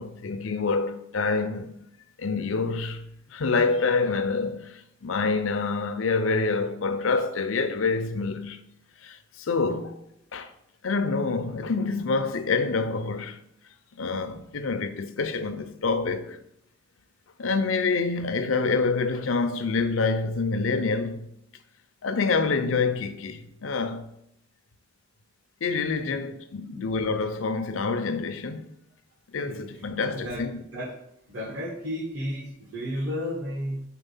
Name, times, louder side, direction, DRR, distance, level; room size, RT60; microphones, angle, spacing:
voice 1, 0.0-1.7 2.2-8.6 9.0-10.0 10.3-10.5 10.8-13.4 14.0-16.4 17.4-21.3 22.0-24.1 25.6-28.7 29.3-30.6, left 4 dB, 90° left, 0.6 m, -27 dB
voice 2, 29.5-29.9 30.1-30.4 30.7-30.9 31.3-33.8, equal, 70° right, 1.1 m, -33 dB
4.6 x 4.0 x 5.4 m
head